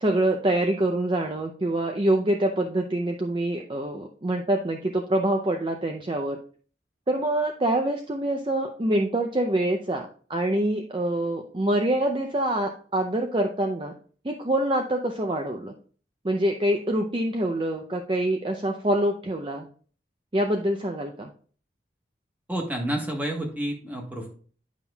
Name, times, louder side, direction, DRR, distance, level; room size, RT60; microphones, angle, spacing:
voice 1, 0.0-6.4 7.1-14.0 14.2-15.7 16.2-19.7 20.3-21.3, right 1 dB, 30° right, 3 dB, 0.5 m, -25 dB
voice 2, 22.5-24.3, right 1 dB, 10° right, 1 dB, 1.4 m, -29 dB
10.5 x 5.4 x 2.3 m, 0.43 s
head